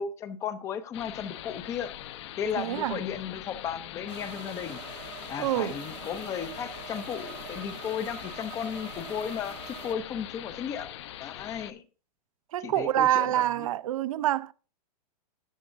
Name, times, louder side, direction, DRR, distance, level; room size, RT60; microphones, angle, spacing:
voice 1, 0.0-1.9 2.4-4.8 5.3-10.9 11.2-11.9 12.6-13.7, left 8 dB, 15° left, 0.5 m, -35 dB
sound 1, 0.9-11.7, left 12 dB, 45° left, 0.8 m, -42 dB
voice 2, 2.6-3.0 5.4-5.8 12.5-14.5, right 13 dB, 55° right, 0.6 m, -26 dB
sound 2, 4.1-9.9, right 9 dB, 75° right, 1.8 m, -45 dB
13.5 x 9.0 x 2.6 m
supercardioid pair, 170°, 21 cm